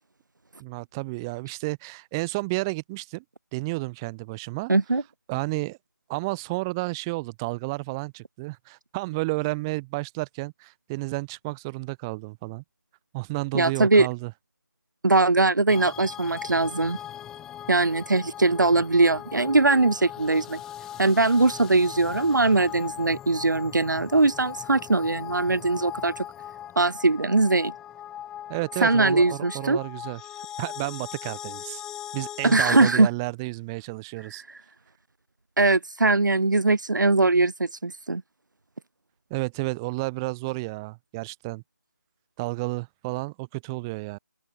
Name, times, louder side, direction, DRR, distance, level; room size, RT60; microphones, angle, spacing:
voice 1, 0.6-3.2 3.5-4.7 5.3-5.8 6.1-12.6 13.1-14.3 28.5-30.2 30.6-31.8 32.1-34.4 39.3-41.6 42.4-44.2, right 24 dB, 10° right, 3.7 m, -31 dB
voice 2, 4.7-5.0 13.5-14.1 15.0-17.0 17.7-20.6 21.0-26.2 26.7-27.7 28.8-29.8 32.4-33.1 34.5-34.6 35.6-38.2, right 3 dB, 75° right, 1.6 m, -21 dB
sound 1, 15.7-32.9, left 11 dB, 5° left, 1.3 m, -39 dB
open air
figure-of-eight pair, 165°, 10 cm